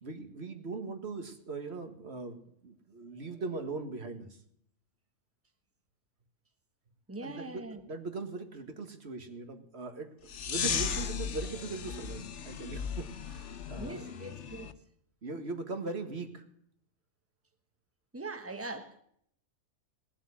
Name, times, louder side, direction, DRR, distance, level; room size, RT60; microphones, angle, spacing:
voice 1, 0.0-4.4 7.2-14.3 15.2-16.4, right 3 dB, 50° right, 2.0 m, -40 dB
voice 2, 7.1-7.8 13.8-14.7 18.1-19.0, right 2 dB, 10° right, 1.1 m, -41 dB
sound 1, 10.3-14.7, left 7 dB, 60° left, 1.2 m, -36 dB
19.0 x 7.3 x 9.9 m
omnidirectional pair, 1.5 m